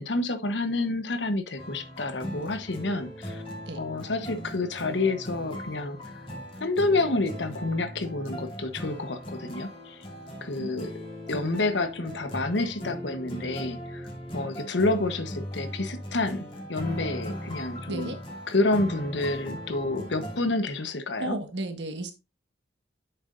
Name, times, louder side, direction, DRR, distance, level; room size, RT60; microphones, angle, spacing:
voice 1, 0.0-3.4 3.8-6.0 6.6-10.1 10.4-10.9 11.3-14.1 14.3-18.1 18.5-21.4, left 2 dB, 80° left, 1.1 m, -29 dB
sound 1, 1.6-20.4, equal, 35° left, 2.8 m, -39 dB
voice 2, 21.2-22.1, right 1 dB, 70° right, 1.5 m, -33 dB
9.0 x 7.2 x 2.6 m
head